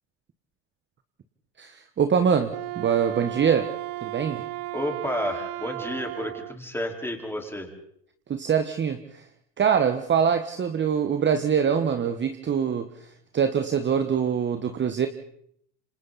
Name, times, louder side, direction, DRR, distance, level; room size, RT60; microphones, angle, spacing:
voice 1, 1.6-3.7 4.0-4.4 8.3-9.2 9.6-12.9 13.3-15.1, right 7 dB, 25° right, 8 dB, 1.3 m, -24 dB
Wind instrument woodwind instrument, 2.4-6.6, right 18 dB, 70° right, 1.1 m, -34 dB
voice 2, 4.7-7.7, left 1 dB, 5° left, 2 dB, 4.4 m, -31 dB
27.5 x 25.5 x 4.1 m, 0.70 s
hypercardioid pair, 100°, 48 cm